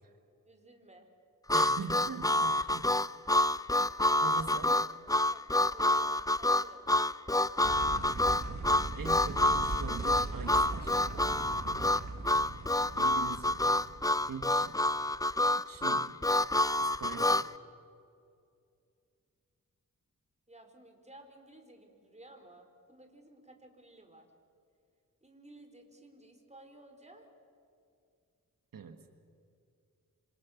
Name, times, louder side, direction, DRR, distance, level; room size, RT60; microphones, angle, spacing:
voice 1, 0.4-1.1 4.3-4.8 5.3-6.9 11.7-12.0 20.5-24.3 25.2-27.3, right 1 dB, 20° right, 5 dB, 4.2 m, -55 dB
Harmonica, 1.5-17.5, left 1 dB, 10° left, 0.6 m, -28 dB
voice 2, 1.5-2.9 4.2-4.8 8.9-11.0 12.9-13.6 14.3-14.8 15.7-16.2 16.8-17.5 28.7-29.0, right 6 dB, 90° right, 8 dB, 1.5 m, -42 dB
sound 1, 7.6-15.0, right 3 dB, 55° right, 2.0 m, -40 dB
27.5 x 26.0 x 7.2 m, 2.4 s
wide cardioid pair, 80°, 33 cm